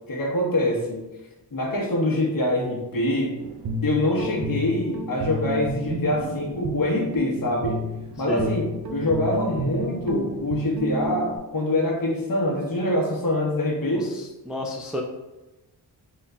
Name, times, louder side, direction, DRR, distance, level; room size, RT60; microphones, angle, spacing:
voice 1, 0.1-1.1 1.5-3.3 3.8-7.8 8.2-14.1, left 1 dB, 50° left, -3 dB, 1.2 m, -25 dB
Guitar, 3.4-11.4, right 1 dB, 55° right, 0.6 m, -31 dB
voice 2, 14.5-15.0, left 1 dB, ahead, 0 dB, 0.3 m, -29 dB
3.9 x 3.7 x 2.3 m, 1.0 s
wide cardioid pair, 110°, 43 cm